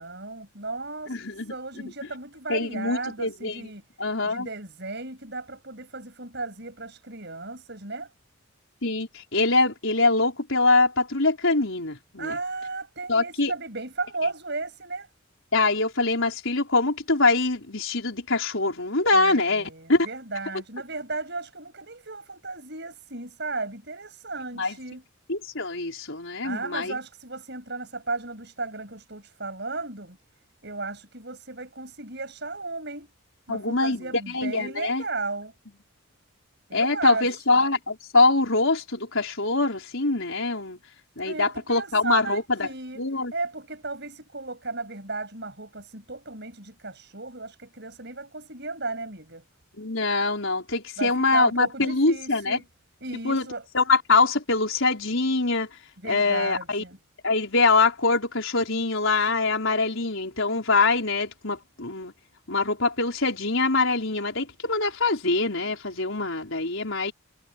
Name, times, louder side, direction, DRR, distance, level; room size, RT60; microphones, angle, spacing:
voice 1, 0.0-3.8 4.2-8.1 12.2-15.1 19.1-25.0 26.4-30.2 30.6-33.1 33.5-35.5 36.7-37.6 41.2-43.0 43.3-49.4 51.0-52.6 53.0-53.6 56.0-57.0, right 3 dB, 50° right, 7.1 m, -35 dB
voice 2, 1.1-1.9 2.5-3.7 4.0-4.5 8.8-12.4 13.1-13.5 15.5-20.1 24.5-24.8 25.3-27.0 33.5-35.0 36.7-40.8 41.2-42.7 43.0-43.3 49.8-52.6 53.2-53.5 53.7-55.7 56.0-56.8 57.2-62.1 62.5-67.1, left 3 dB, 65° left, 4.7 m, -24 dB
head